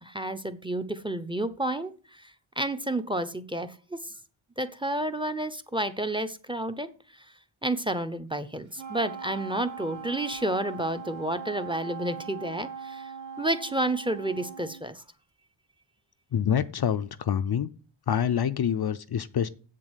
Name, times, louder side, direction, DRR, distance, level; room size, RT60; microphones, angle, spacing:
voice 1, 0.0-4.2 4.6-7.3 7.6-15.0, right 1 dB, 10° right, 0.7 m, -31 dB
Wind instrument woodwind instrument, 8.7-14.8, right 6 dB, 65° right, 2.2 m, -40 dB
voice 2, 16.3-17.7 18.1-19.5, left 8 dB, 50° left, 0.6 m, -26 dB
8.0 x 7.5 x 8.1 m
wide cardioid pair, 135°, 50 cm